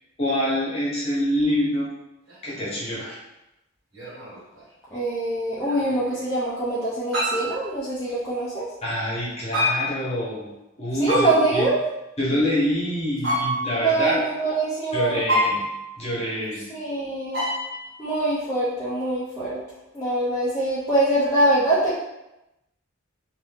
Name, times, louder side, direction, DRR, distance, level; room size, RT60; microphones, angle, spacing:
voice 1, 0.2-1.9 2.4-3.2 8.8-10.5 10.8-11.7 12.2-14.2 14.9-15.6 16.0-16.6, equal, 30° left, -7 dB, 1.0 m, -26 dB
sound 1, 2.3-2.4 3.9-4.6 5.6-6.3 7.1-7.6 9.5-10.0 11.1-11.7 13.2-13.9 15.3-16.0 17.3-17.9, left 1 dB, 75° right, 1.3 m, -27 dB
voice 2, 4.9-8.7 10.9-11.8 13.7-15.2 16.5-17.4 18.0-19.6 19.9-21.9, right 2 dB, 15° left, -11 dB, 0.5 m, -24 dB
2.6 x 2.6 x 3.4 m, 0.92 s
head